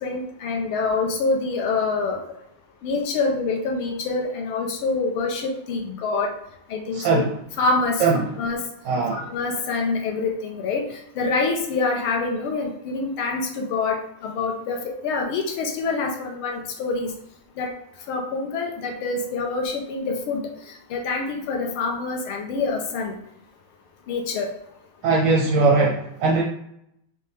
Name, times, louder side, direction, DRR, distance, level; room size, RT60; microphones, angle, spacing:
voice 1, 0.0-2.2 2.8-6.3 6.7-7.2 7.6-8.0 8.4-8.6 9.1-10.8 11.1-17.1 17.6-17.7 18.1-20.4 20.9-23.1 24.1-24.5, left 4 dB, 80° left, 1 dB, 1.5 m, -26 dB
voice 2, 6.9-7.4 8.0-8.3 8.8-9.3 25.0-26.4, right 4 dB, 75° right, -1 dB, 1.0 m, -20 dB
5.5 x 2.2 x 3.3 m, 0.77 s
omnidirectional pair, 2.4 m